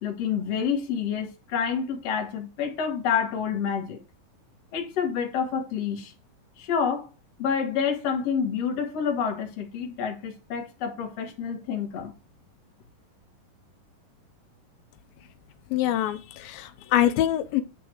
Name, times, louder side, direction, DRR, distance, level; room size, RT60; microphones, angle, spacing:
voice 1, 0.0-4.0 4.7-6.1 6.6-7.1 7.4-12.1, left 7 dB, 50° left, 2.4 m, -28 dB
voice 2, 15.7-17.6, left 12 dB, 85° left, 2.5 m, -24 dB
9.7 x 3.8 x 4.5 m
omnidirectional pair, 4.2 m